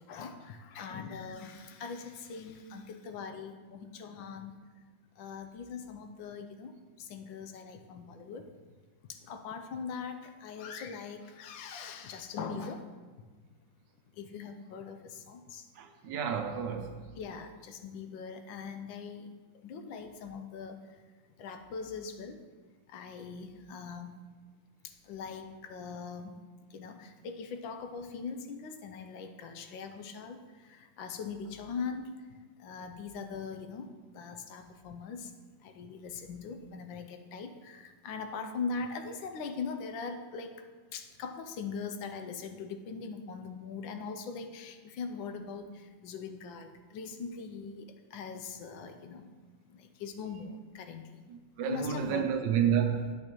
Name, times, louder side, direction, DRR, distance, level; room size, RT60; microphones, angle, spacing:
voice 1, 0.0-4.6 5.2-8.5 9.1-12.9 14.1-15.7 17.2-19.3 19.6-21.0 21.4-22.4 22.9-24.2 24.8-26.4 26.7-35.3 35.6-40.6 40.9-49.3 49.7-51.0 51.6-52.3, left 5 dB, 80° left, 1.4 m, -41 dB
voice 2, 15.8-17.0 51.3-53.2, right 8 dB, 70° right, 1.2 m, -30 dB
9.1 x 7.8 x 3.0 m
omnidirectional pair, 2.1 m